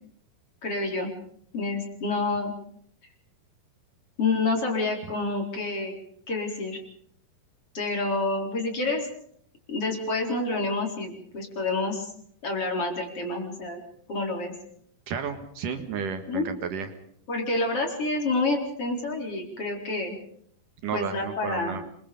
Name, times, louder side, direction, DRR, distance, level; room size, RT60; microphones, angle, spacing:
voice 1, 0.6-1.1 1.5-2.5 4.2-5.9 6.3-6.8 7.7-9.1 9.7-12.1 12.4-13.8 14.1-14.5 16.3-16.5 17.3-20.1 20.9-21.8, left 3 dB, 40° left, 2 dB, 5.0 m, -28 dB
voice 2, 15.1-16.9 20.8-21.8, right 6 dB, 65° right, 7 dB, 3.1 m, -32 dB
26.5 x 23.5 x 5.3 m, 0.66 s
omnidirectional pair, 4.2 m